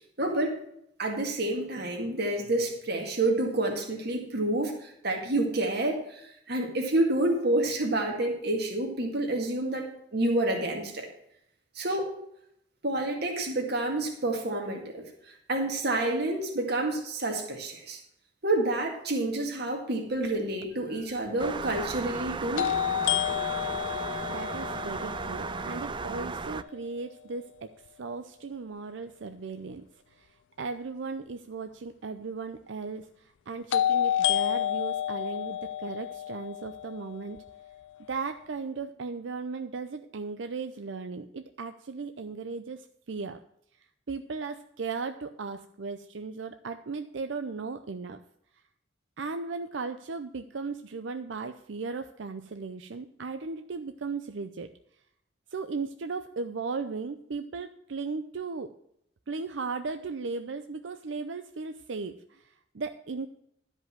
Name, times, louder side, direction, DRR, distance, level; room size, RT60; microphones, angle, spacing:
voice 1, 0.2-0.6 1.0-11.1 11.8-12.1 12.8-15.0 15.5-18.0 18.4-22.7, right 2 dB, 60° right, 1 dB, 2.0 m, -29 dB
sound 1, 20.6-20.7 22.6-26.5 33.7-37.7, left 11 dB, 70° left, 0.3 m, -30 dB
sound 2, 21.4-26.6, right 4 dB, 25° right, 0.4 m, -35 dB
voice 2, 24.3-27.7 28.0-29.9 30.2-30.3 30.6-33.1 33.5-37.4 38.1-42.8 43.1-43.4 44.1-48.2 49.2-54.7 55.5-58.7 59.3-62.4 62.7-63.3, right 4 dB, 80° right, 8 dB, 0.6 m, -36 dB
12.0 x 5.4 x 7.5 m, 0.73 s
head